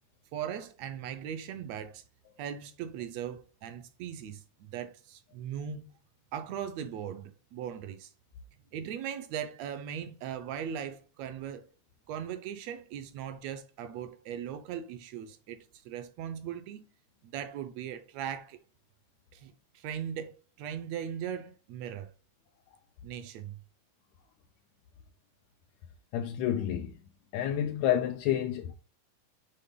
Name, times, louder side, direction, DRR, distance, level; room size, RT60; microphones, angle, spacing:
voice 1, 0.3-2.0 2.4-5.9 6.3-8.1 8.7-11.7 12.1-16.8 17.2-18.6 19.3-22.1 23.0-23.6, right 9 dB, 80° right, 1.7 m, -39 dB
voice 2, 26.1-26.9 27.3-28.7, left 10 dB, 80° left, 1.8 m, -29 dB
7.8 x 3.4 x 3.7 m
omnidirectional pair, 3.5 m